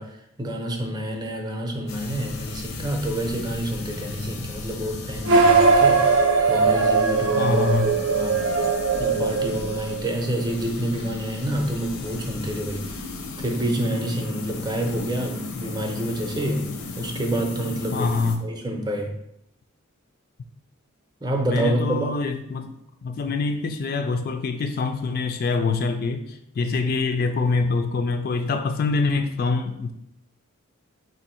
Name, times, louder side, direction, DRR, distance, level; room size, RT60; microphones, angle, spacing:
voice 1, 0.0-8.4 9.0-13.0 13.4-16.7 17.0-18.1 18.4-19.1 21.2-22.1, right 1 dB, 20° right, 3 dB, 0.6 m, -28 dB
sound 1, 1.9-18.4, left 3 dB, 85° left, 0.6 m, -36 dB
sound 2, 5.2-10.1, right 4 dB, 70° right, 0.6 m, -20 dB
voice 2, 7.4-7.9 17.9-18.5 21.5-22.7 23.0-29.9, left 4 dB, 45° left, 7 dB, 0.3 m, -25 dB
4.6 x 2.6 x 4.3 m, 0.79 s
head